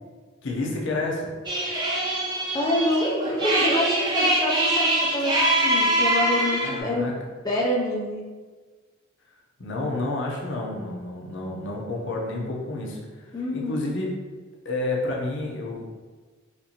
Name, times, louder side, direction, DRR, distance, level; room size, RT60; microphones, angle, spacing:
voice 1, 0.4-1.3 6.6-7.1 9.6-14.1 14.6-15.8, left 2 dB, 60° left, -2 dB, 0.7 m, -30 dB
sound 1, 1.5-6.8, right 1 dB, 20° right, 0.7 m, -23 dB
voice 2, 2.5-7.1 7.4-8.2 13.3-13.9, left 1 dB, 20° left, -4 dB, 0.4 m, -26 dB
4.3 x 2.5 x 2.8 m, 1.4 s
head